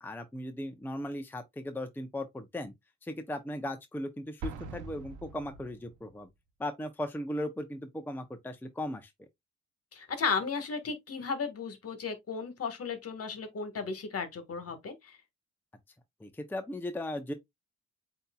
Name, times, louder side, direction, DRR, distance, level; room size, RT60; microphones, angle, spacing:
voice 1, 0.0-2.7 3.0-6.3 6.6-9.1 16.2-17.3, left 1 dB, 5° left, 0.6 m, -37 dB
Explosion, 4.4-6.2, right 3 dB, 90° right, 1.0 m, -43 dB
voice 2, 9.9-15.2, left 5 dB, 50° left, 1.5 m, -35 dB
7.7 x 2.8 x 2.3 m
cardioid pair, 90°, 30 cm